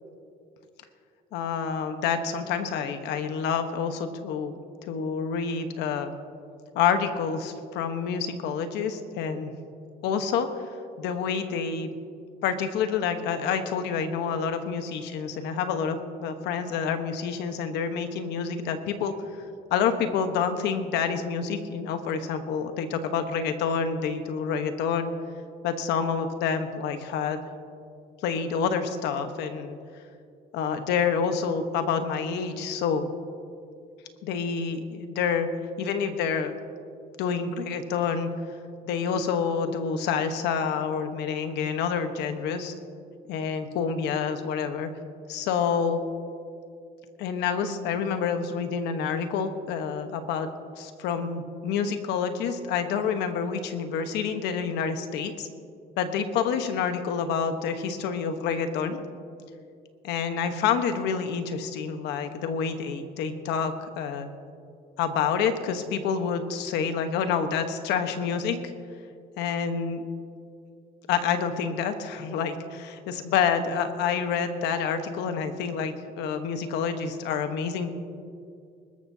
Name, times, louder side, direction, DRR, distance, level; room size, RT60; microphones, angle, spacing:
voice 1, 1.3-4.5 4.8-6.1 6.7-9.5 10.0-10.5 11.0-11.9 12.4-19.1 19.7-25.1 25.6-27.4 28.2-29.8 30.5-33.1 34.2-35.5 35.8-36.5 37.2-38.3 38.8-42.7 43.3-44.9 45.3-46.0 47.2-50.5 50.8-55.5 56.0-59.0 60.0-64.3 65.0-68.7 69.4-70.0 71.1-77.9, left 6 dB, 85° left, 8 dB, 1.2 m, -28 dB
25.0 x 13.5 x 2.8 m, 2.4 s
cardioid pair, 110°, 17 cm